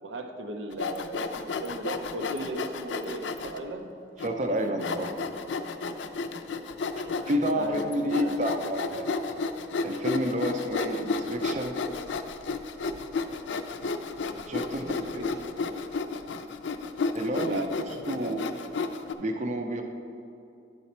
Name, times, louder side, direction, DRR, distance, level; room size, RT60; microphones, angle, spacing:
voice 1, 0.0-3.9 7.5-8.4 9.3-9.4 14.7-15.3 17.3-17.7 18.1-18.4, right 2 dB, 90° right, 5 dB, 0.6 m, -37 dB
Sawing, 0.7-3.6 4.2-4.3 4.8-19.1, left 4 dB, 80° left, 0.4 m, -32 dB
voice 2, 4.2-5.1 7.0-9.1 9.8-11.8 14.5-15.3 17.1-18.4 19.2-19.8, equal, 40° right, 4 dB, 0.5 m, -30 dB
10.5 x 4.1 x 4.3 m, 2.6 s
head